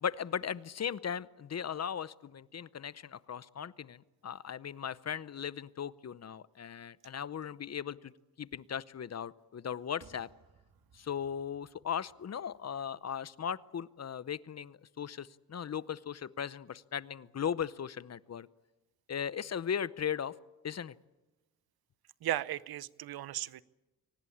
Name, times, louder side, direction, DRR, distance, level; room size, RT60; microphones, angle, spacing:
voice 1, 0.0-8.1 8.4-10.3 10.9-18.5 19.1-20.4 20.6-21.0, left 8 dB, 45° left, 18 dB, 0.8 m, -38 dB
sound 1, 10.0-13.4 13.7-13.8, right 6 dB, 65° right, 2.2 m, -64 dB
voice 2, 22.2-23.6, right 13 dB, 85° right, 19 dB, 0.7 m, -36 dB
24.5 x 18.5 x 8.6 m, 1.1 s
cardioid pair, 80°, 36 cm